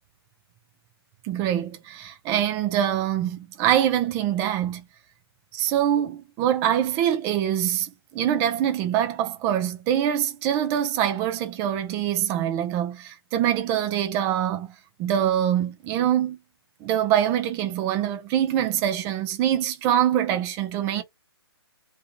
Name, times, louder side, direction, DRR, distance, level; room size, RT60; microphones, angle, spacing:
voice 1, 1.2-4.8 5.5-14.7 15.0-16.4 16.8-21.0, right 10 dB, 15° right, 0.4 m, -24 dB
2.6 x 2.3 x 3.0 m
hypercardioid pair, 150°, 14 cm